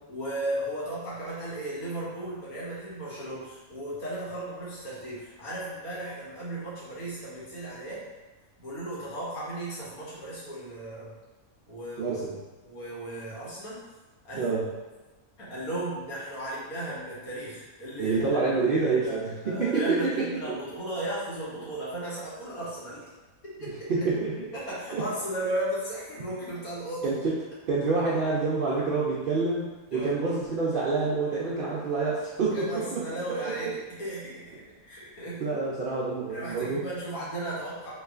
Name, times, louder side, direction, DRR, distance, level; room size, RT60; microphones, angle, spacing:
voice 1, 0.1-8.0 8.6-11.2 11.7-12.2 12.6-13.8 14.2-14.5 15.4-18.2 18.8-23.1 23.6-23.7 24.5-27.2 29.9-30.1 32.5-35.5 36.3-37.9, right 1 dB, 80° left, -8 dB, 1.7 m, -35 dB
voice 2, 12.0-12.4 14.4-14.7 18.0-20.6 23.9-24.4 24.9-25.0 27.0-27.4 27.7-33.0 35.4-36.8, right 3 dB, 65° right, -7 dB, 0.5 m, -27 dB
3.9 x 3.0 x 2.4 m, 1.1 s
omnidirectional pair, 1.5 m